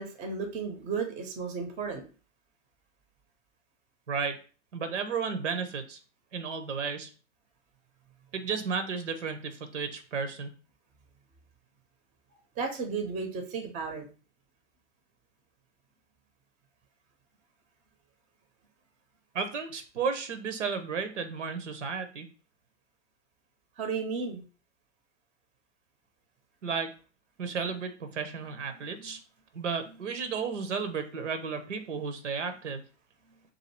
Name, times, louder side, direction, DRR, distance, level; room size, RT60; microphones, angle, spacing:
voice 1, 0.0-2.0 12.6-14.1 23.8-24.4 28.7-29.2 29.9-30.0 31.8-32.0, right 5 dB, 20° right, 5 dB, 0.6 m, -34 dB
voice 2, 4.1-4.4 4.7-6.0 6.3-7.1 8.3-10.5 19.3-22.3 26.6-26.9 27.4-29.2 29.5-32.8, right 5 dB, 75° right, 8 dB, 0.7 m, -33 dB
2.7 x 2.6 x 4.2 m, 0.36 s
hypercardioid pair, 110°, 36 cm